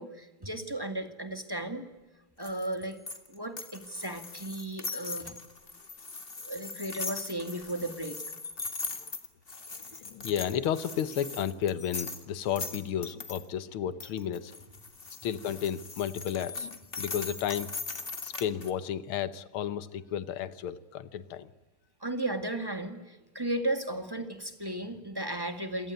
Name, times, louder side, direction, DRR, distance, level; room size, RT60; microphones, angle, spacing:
voice 1, 0.0-1.9 2.4-3.0 3.3-5.4 6.4-8.2 22.0-25.9, right 1 dB, 10° right, 8 dB, 2.0 m, -35 dB
sound 1, 2.4-13.4 14.0-18.7, left 4 dB, 25° left, 2.0 m, -40 dB
voice 2, 10.0-14.5 15.2-17.7 18.2-21.5, left 9 dB, 85° left, 14 dB, 1.9 m, -32 dB
28.0 x 18.0 x 9.3 m, 1.1 s
omnidirectional pair, 2.3 m